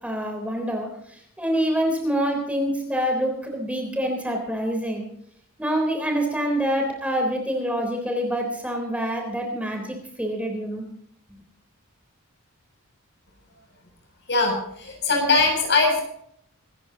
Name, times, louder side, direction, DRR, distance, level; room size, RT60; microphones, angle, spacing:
voice 1, 0.0-5.1 5.6-10.8, equal, 5° right, 2 dB, 3.7 m, -26 dB
voice 2, 14.3-16.0, left 3 dB, 55° left, 2 dB, 7.4 m, -21 dB
25.5 x 14.0 x 2.9 m, 0.68 s
head